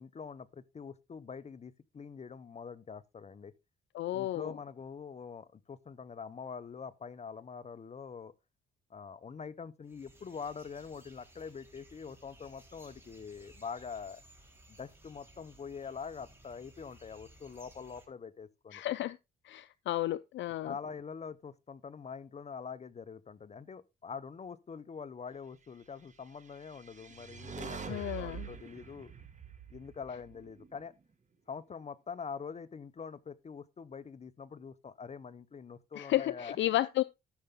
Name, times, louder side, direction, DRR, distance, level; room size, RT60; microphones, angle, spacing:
voice 1, 0.0-3.5 4.1-8.3 8.9-14.2 14.7-18.8 20.6-29.1 29.7-30.9 31.5-36.7, left 6 dB, 35° left, 0.7 m, -44 dB
voice 2, 3.9-4.5 18.7-19.2 19.4-20.7 27.9-28.5 36.0-37.0, left 14 dB, 70° left, 0.5 m, -32 dB
sound 1, 9.8-18.1, right 1 dB, 10° right, 3.6 m, -59 dB
sound 2, 26.5-30.8, right 6 dB, 35° right, 2.0 m, -45 dB
13.0 x 6.7 x 3.6 m
cardioid pair, 90°, 20 cm